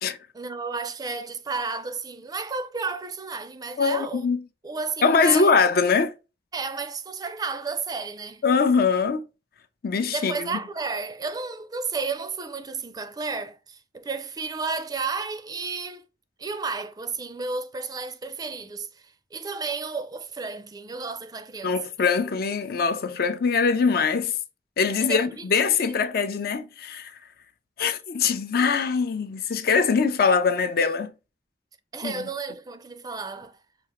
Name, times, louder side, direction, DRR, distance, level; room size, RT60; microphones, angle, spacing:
voice 1, 0.3-4.3 4.6-5.5 6.5-8.4 10.1-16.1 16.4-21.7 25.0-25.5 25.8-26.1 31.9-33.6, right 4 dB, 20° right, 0.4 m, -32 dB
voice 2, 3.8-4.4 5.0-6.1 8.4-9.2 9.8-10.6 21.6-24.3 24.8-27.1 27.8-31.1 32.0-32.3, left 5 dB, 55° left, 0.5 m, -22 dB
5.9 x 2.4 x 3.0 m
head